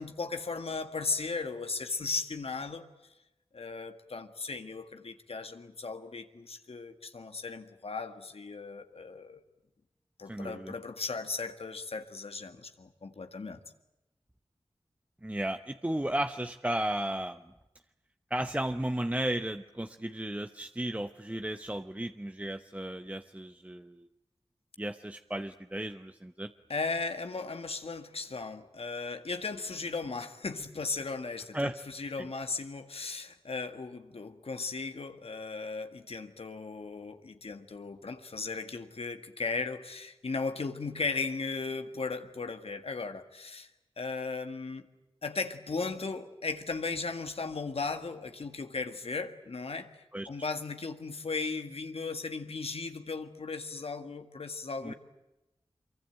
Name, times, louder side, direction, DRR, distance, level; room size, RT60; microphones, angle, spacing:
voice 1, 0.0-2.9 3.5-9.4 10.2-13.6 26.7-43.7 44.0-44.9 45.2-54.9, left 4 dB, 80° left, 1.9 m, -36 dB
voice 2, 10.3-10.7 15.2-17.4 18.3-24.1 24.8-26.5 31.5-31.8 32.2-32.3 50.1-50.3 54.8-54.9, right 1 dB, 15° right, 0.9 m, -34 dB
24.5 x 23.5 x 9.0 m
wide cardioid pair, 50°, 10 cm